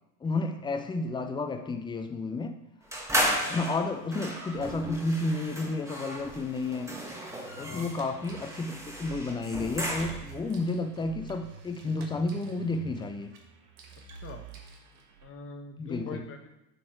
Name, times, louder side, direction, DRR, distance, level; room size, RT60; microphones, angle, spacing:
voice 1, 0.2-2.6 3.5-7.0 7.6-13.3 15.8-16.2, left 2 dB, 10° left, 7 dB, 0.6 m, -31 dB
sound 1, 2.9-10.4, equal, 5° right, 1.3 m, -34 dB
sound 2, 7.3-15.3, right 4 dB, 55° right, 1.6 m, -48 dB
voice 2, 7.6-7.9 13.9-14.4 15.2-16.5, left 4 dB, 25° left, 4 dB, 1.1 m, -42 dB
8.0 x 4.3 x 4.4 m, 0.91 s
hypercardioid pair, 85°, 49 cm